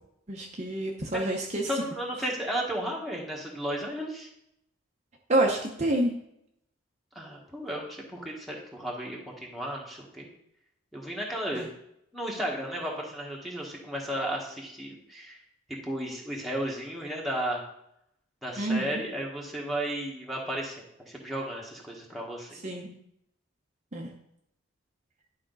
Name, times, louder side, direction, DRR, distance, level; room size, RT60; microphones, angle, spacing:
voice 1, 0.3-1.7 5.3-6.1 11.5-11.6 18.6-19.0 22.6-22.9 23.9-24.1, right 1 dB, 35° right, 0 dB, 0.9 m, -28 dB
voice 2, 1.7-4.3 7.1-10.3 10.9-11.7 12.1-15.4 15.7-17.7 18.4-22.5, right 1 dB, ahead, -3 dB, 1.5 m, -34 dB
11.0 x 5.2 x 4.0 m, 0.76 s
head